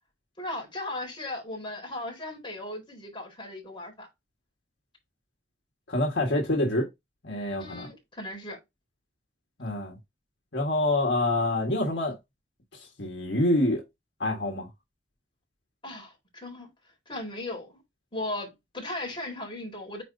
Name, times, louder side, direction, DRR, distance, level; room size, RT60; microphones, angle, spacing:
voice 1, 0.4-4.1 7.6-8.6 15.8-16.7 17.1-17.8 18.1-20.0, left 1 dB, 30° left, 4.1 m, -37 dB
voice 2, 5.9-6.9 7.2-7.9 9.6-10.0 10.5-12.2 12.7-13.8 14.2-14.7, left 1 dB, 70° left, 1.7 m, -26 dB
9.2 x 4.4 x 2.7 m
head